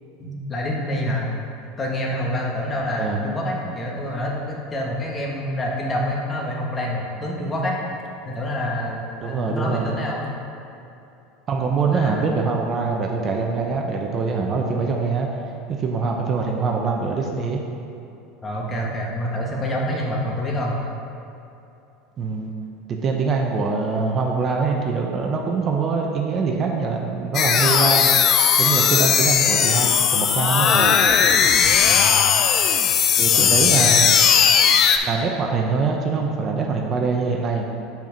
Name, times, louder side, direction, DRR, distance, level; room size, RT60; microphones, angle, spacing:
voice 1, 0.2-1.3 1.8-7.8 8.2-10.2 11.9-12.2 18.4-20.8 31.8-32.3 33.3-34.0, left 1 dB, 25° left, -2 dB, 1.4 m, -27 dB
voice 2, 9.2-9.9 11.5-15.3 15.8-17.6 22.2-22.5 22.9-28.1 28.6-31.0 33.2-34.1 35.0-37.6, right 4 dB, 35° right, 1 dB, 0.7 m, -23 dB
sound 1, 27.3-35.0, left 7 dB, 45° left, 0.5 m, -17 dB
5.9 x 4.4 x 5.1 m, 2.8 s
supercardioid pair, 105°, 0 cm